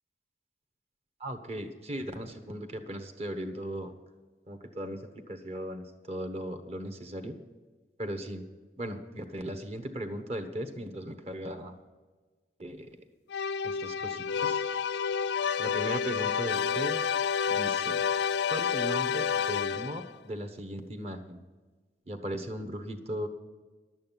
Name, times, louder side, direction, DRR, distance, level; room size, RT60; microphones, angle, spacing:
voice 1, 1.2-3.9 4.5-5.0 5.3-7.4 8.0-8.4 8.8-11.7 12.6-13.0 13.6-14.6 15.6-17.0 17.5-18.0 18.5-21.4 22.1-23.3, right 1 dB, 35° right, 8 dB, 1.1 m, -37 dB
sound 1, 13.3-20.2, left 7 dB, 75° left, 0.3 m, -29 dB
12.0 x 8.8 x 7.4 m, 1.4 s
head